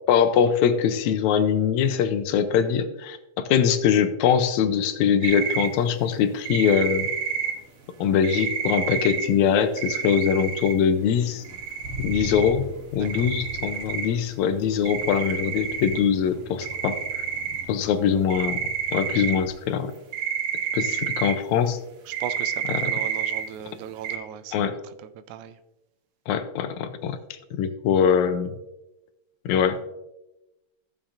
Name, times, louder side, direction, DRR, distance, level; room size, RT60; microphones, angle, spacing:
voice 1, 0.1-7.1 8.0-11.4 12.0-12.7 12.9-17.2 17.7-18.6 18.9-19.9 20.7-21.8 22.7-22.9 24.5-24.7 26.3-27.2 27.5-28.5 29.5-29.8, left 7 dB, 80° left, 10 dB, 2.0 m, -22 dB
Motor vehicle (road), 4.6-4.9 5.3-19.7 20.1-20.5, equal, 30° left, 1.7 m, -43 dB
sound 1, 5.2-5.7 6.4-7.5 8.2-9.3 9.8-10.7 11.4-12.5 13.0-14.1 14.8-16.0 16.6-17.6 18.2-19.4 20.1-21.3 22.1-23.4 24.0-24.2, right 7 dB, 60° right, 1.7 m, -29 dB
voice 2, 13.0-13.3 22.1-24.8 25.3-25.6, right 10 dB, 85° right, 12 dB, 2.0 m, -37 dB
14.5 x 7.2 x 2.6 m, 0.95 s
omnidirectional pair, 3.3 m